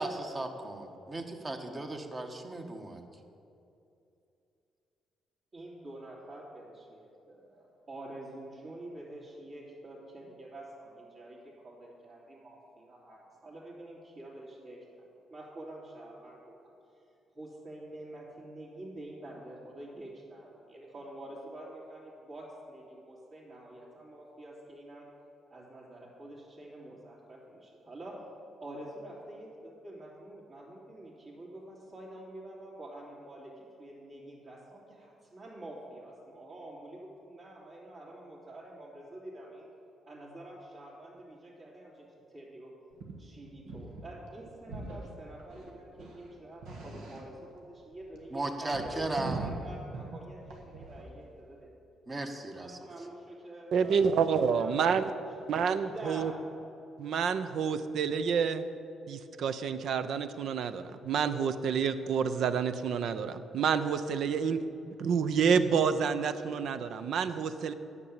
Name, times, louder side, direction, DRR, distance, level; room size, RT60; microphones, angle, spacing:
voice 1, 0.0-3.0 48.3-49.5 52.1-52.8, right 2 dB, 30° right, 5 dB, 1.2 m, -36 dB
voice 2, 5.5-16.7 17.3-25.1 25.5-28.2 28.6-39.7 40.1-42.7 43.2-51.7 52.6-54.0 54.3-55.2 55.7-56.3, right 1 dB, 50° right, -8 dB, 2.8 m, -47 dB
sound 1, 42.9-43.2 43.5-44.0 44.3-45.1 45.4-47.5 47.8-51.2, right 3 dB, 85° right, 1.5 m, -42 dB
voice 3, 53.7-55.0 55.5-56.3 57.0-58.7 59.1-64.6 65.0-67.7, right 6 dB, 70° right, 11 dB, 0.6 m, -28 dB
9.8 x 6.8 x 8.8 m, 2.7 s
cardioid pair, 90°, 0 cm